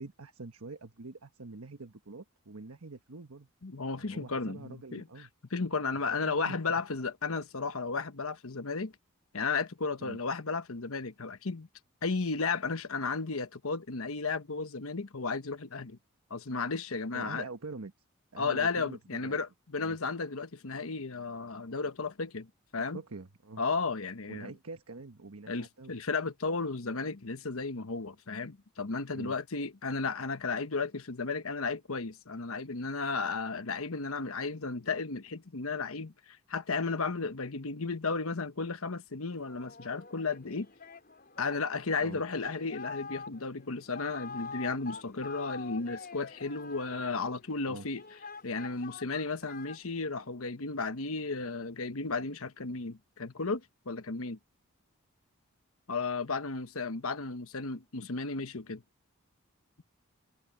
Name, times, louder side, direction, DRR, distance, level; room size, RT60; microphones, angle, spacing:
voice 1, 0.0-3.5 3.9-5.3 6.1-6.6 10.0-10.2 17.1-17.9 18.3-19.4 19.8-20.0 22.9-23.6 24.3-26.0 29.1-29.4 42.0-42.2 47.7-47.9, right 3 dB, 80° right, 1.2 m, -45 dB
voice 2, 3.6-8.9 9.3-11.7 12.0-16.0 16.3-17.4 18.4-22.5 22.7-23.0 23.6-24.5 25.5-40.7 41.4-48.0 48.4-53.6 53.9-54.4 55.9-58.8, left 4 dB, 75° left, 1.1 m, -34 dB
Singing, 39.3-50.3, left 4 dB, 45° left, 5.2 m, -46 dB
head